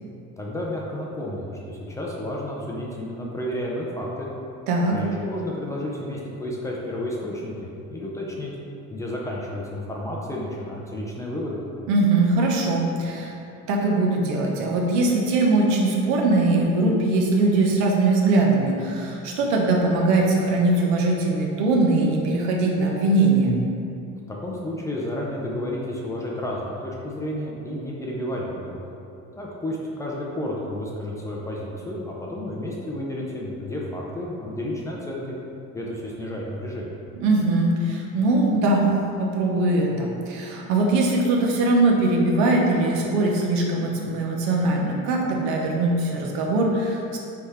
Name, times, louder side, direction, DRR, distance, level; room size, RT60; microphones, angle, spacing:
voice 1, 0.4-4.3 4.9-8.5 8.9-11.6 24.3-28.9 29.3-35.3 35.7-36.9, left 1 dB, 10° left, -4 dB, 0.4 m, -31 dB
voice 2, 4.7-5.0 11.9-13.3 13.7-23.6 37.2-38.8 39.2-47.2, right 2 dB, 75° right, -1 dB, 1.1 m, -21 dB
9.5 x 3.5 x 3.4 m, 2.6 s
cardioid pair, 180°, 30 cm